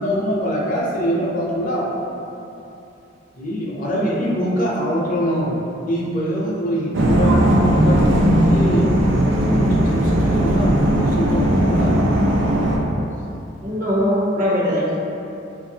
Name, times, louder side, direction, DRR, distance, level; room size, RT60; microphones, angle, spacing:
voice 1, 0.0-2.0 3.4-8.9 9.4-11.9, equal, 45° left, -5 dB, 0.6 m, -23 dB
sound 1, 6.9-12.8, right 1 dB, 75° right, 0.5 m, -17 dB
voice 2, 13.6-15.0, equal, 45° right, -6 dB, 0.7 m, -21 dB
4.5 x 2.5 x 2.7 m, 2.8 s
head